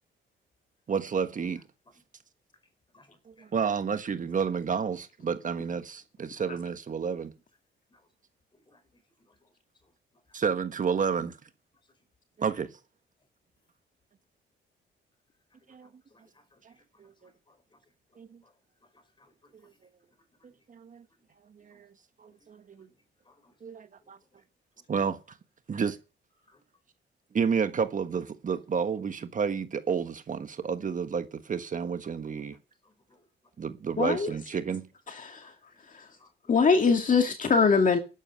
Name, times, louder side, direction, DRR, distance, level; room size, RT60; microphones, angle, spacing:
voice 1, 0.9-1.6 3.5-7.3 10.3-11.4 12.4-12.7 15.7-15.9 17.0-17.1 18.2-18.3 20.7-21.0 21.6-21.9 22.2-22.9 23.6-24.2 24.9-25.2 25.7-26.0 27.3-32.6 33.6-34.9, right 6 dB, 40° right, 1.4 m, -30 dB
voice 2, 2.9-3.5 7.9-8.0 8.7-8.8 15.8-16.2 16.5-16.6 19.2-19.5 22.3-22.4 23.3-23.5 26.5-26.6 33.1-33.2 35.4-35.5 36.2-36.3, left 2 dB, 25° left, 5.3 m, -62 dB
voice 3, 34.0-34.3 35.1-35.4 36.5-38.0, left 5 dB, 40° left, 2.2 m, -22 dB
12.5 x 11.0 x 6.3 m
cardioid pair, 90°, 20 cm